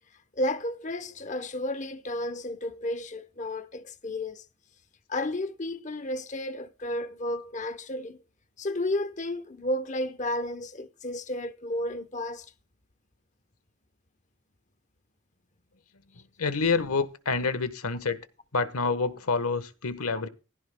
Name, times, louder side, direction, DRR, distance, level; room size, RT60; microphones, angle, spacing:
voice 1, 0.3-4.4 5.1-8.2 8.6-12.5, left 1 dB, 30° left, 0.9 m, -32 dB
voice 2, 16.4-18.2 18.5-20.3, left 4 dB, 80° left, 1.3 m, -27 dB
16.0 x 15.0 x 2.3 m
head